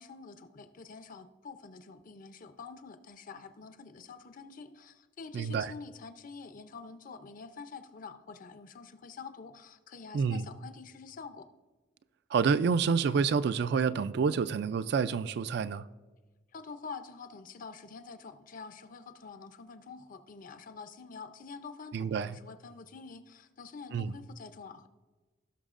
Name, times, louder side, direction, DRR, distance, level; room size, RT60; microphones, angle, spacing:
voice 1, 0.0-11.5 16.5-24.9, left 5 dB, 45° left, 0.6 m, -47 dB
voice 2, 5.3-5.7 10.1-10.4 12.3-15.8 21.9-22.4 23.9-24.1, right 5 dB, 60° right, 0.3 m, -28 dB
17.5 x 6.1 x 2.5 m
head